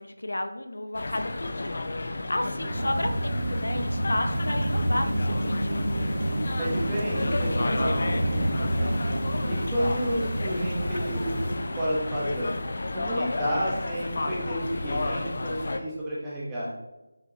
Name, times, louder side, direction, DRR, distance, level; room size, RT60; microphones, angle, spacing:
voice 1, 0.0-5.8, left 1 dB, 75° left, 7 dB, 0.7 m, -32 dB
sound 1, 0.9-15.8, left 2 dB, 40° left, 0.5 m, -32 dB
voice 2, 2.4-2.7 6.6-8.9 9.4-12.5 12.9-16.7, equal, 5° right, -9 dB, 0.9 m, -31 dB
sound 2, 2.7-11.6, right 1 dB, 35° right, 1.5 m, -30 dB
sound 3, 3.1-11.8, right 1 dB, 55° right, 0.9 m, -37 dB
6.5 x 6.1 x 2.8 m, 1.0 s
figure-of-eight pair, 180°, 0 cm